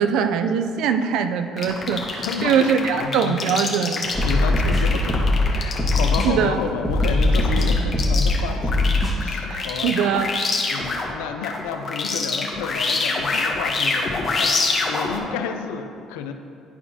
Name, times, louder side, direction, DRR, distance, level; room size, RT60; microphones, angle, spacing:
voice 1, 0.0-4.1 6.2-6.6 9.5-10.3, right 7 dB, 75° right, 8 dB, 0.4 m, -22 dB
sound 1, 1.6-11.1 11.4-15.2, left 3 dB, 45° left, 1.0 m, -26 dB
voice 2, 2.2-2.6 2.9-3.4 4.2-8.9 9.1-10.1 10.7-16.3, left 6 dB, 90° left, 7 dB, 0.4 m, -31 dB
sound 2, 4.1-5.5 5.8-6.3 6.8-8.3 8.6-9.1, left 2 dB, ahead, 1.6 m, -20 dB
10.5 x 4.3 x 2.8 m, 2.5 s
supercardioid pair, 75°, 0 cm